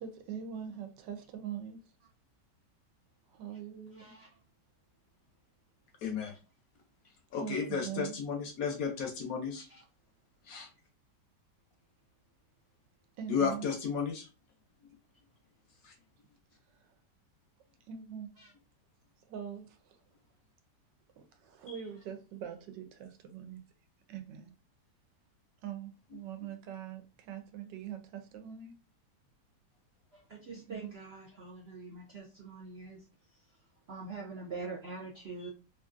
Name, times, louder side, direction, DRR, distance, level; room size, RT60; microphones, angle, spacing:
voice 1, 0.0-1.8 3.3-4.2 7.3-8.2 13.2-13.7 17.9-18.3 19.2-20.0 21.2-23.6 24.1-24.5 25.6-28.7 30.5-30.9, right 9 dB, 85° right, 1.3 m, -43 dB
voice 2, 3.9-4.4 6.2-6.4 9.7-9.8 18.4-18.5 21.7-21.8 30.1-33.6 33.9-35.5, right 3 dB, 70° right, 0.6 m, -45 dB
voice 3, 6.0-6.3 7.3-9.7 10.4-10.7 13.3-14.3 15.8-15.9, left 6 dB, 65° left, 0.9 m, -33 dB
3.0 x 2.6 x 2.4 m
omnidirectional pair, 1.9 m